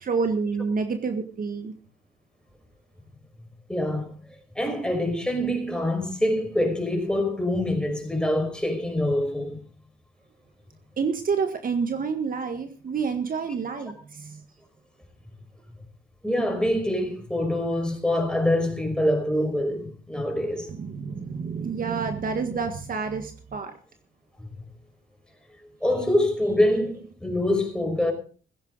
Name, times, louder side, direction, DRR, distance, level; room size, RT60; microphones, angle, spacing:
voice 1, 0.0-1.7 11.0-14.4 20.7-23.7, right 5 dB, 45° right, 1.6 m, -28 dB
voice 2, 3.7-4.2 4.6-9.6 16.2-20.7 25.8-28.1, left 1 dB, 5° left, 5.4 m, -25 dB
15.5 x 15.0 x 4.0 m
cardioid pair, 90°, 20 cm